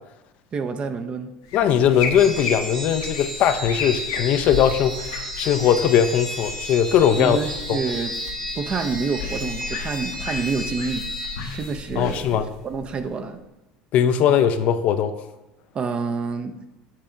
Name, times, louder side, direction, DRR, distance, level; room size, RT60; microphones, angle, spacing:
voice 1, 0.5-1.3 7.2-8.1 8.5-11.1 11.5-12.4 12.6-13.4 15.7-16.5, right 5 dB, 40° right, 8 dB, 0.6 m, -27 dB
sound 1, 1.4-13.4, left 6 dB, 85° left, 1.1 m, -34 dB
voice 2, 1.5-7.4 7.7-7.8 12.0-12.5 13.9-15.2, left 9 dB, 55° left, 9 dB, 0.5 m, -20 dB
sound 2, 2.2-12.0, equal, 80° right, 2.6 m, -33 dB
7.5 x 3.7 x 4.5 m, 0.98 s
hypercardioid pair, 85°, 3 cm